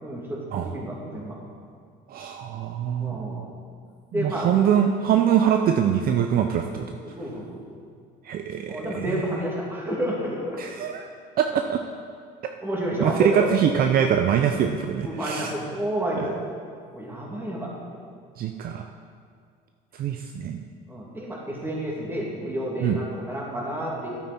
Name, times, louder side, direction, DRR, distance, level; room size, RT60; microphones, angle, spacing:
voice 1, 0.0-1.4 3.0-3.5 4.1-4.6 7.0-7.6 8.7-10.6 12.6-13.5 15.0-16.4 16.9-17.7 20.9-24.1, equal, 10° right, -4 dB, 2.6 m, -30 dB
voice 2, 2.1-3.4 4.1-7.0 8.2-9.2 10.6-11.1 11.4-11.8 13.0-15.5 16.2-16.3 18.4-18.9 19.9-20.6 22.8-23.0, right 9 dB, 55° right, 5 dB, 0.6 m, -23 dB
11.0 x 8.4 x 4.3 m, 2.1 s
cardioid pair, 110°, 19 cm